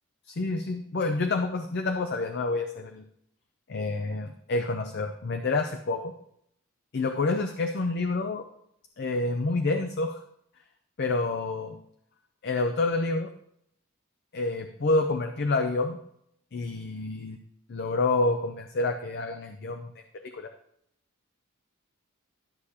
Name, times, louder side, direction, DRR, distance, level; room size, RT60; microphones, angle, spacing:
voice 1, 0.3-3.0 3.7-6.1 6.9-8.4 9.0-10.2 11.0-11.8 12.4-13.3 14.3-16.0 16.5-17.4 17.7-19.9 20.2-20.5, left 3 dB, 50° left, 6 dB, 0.5 m, -28 dB
12.0 x 6.4 x 2.8 m, 0.72 s
head